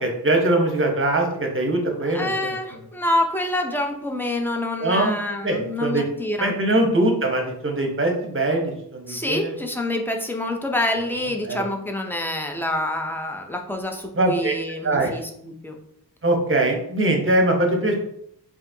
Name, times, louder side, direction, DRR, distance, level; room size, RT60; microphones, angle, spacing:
voice 1, 0.0-2.5 4.8-5.2 5.4-6.1 6.4-9.6 11.4-11.6 14.1-14.5 14.8-15.1 16.2-18.0, right 1 dB, 30° right, 2 dB, 0.8 m, -22 dB
voice 2, 2.1-6.6 6.8-6.9 9.1-15.8, left 1 dB, 5° left, 3 dB, 0.5 m, -27 dB
4.8 x 2.8 x 2.6 m, 0.71 s
wide cardioid pair, 100°, 40 cm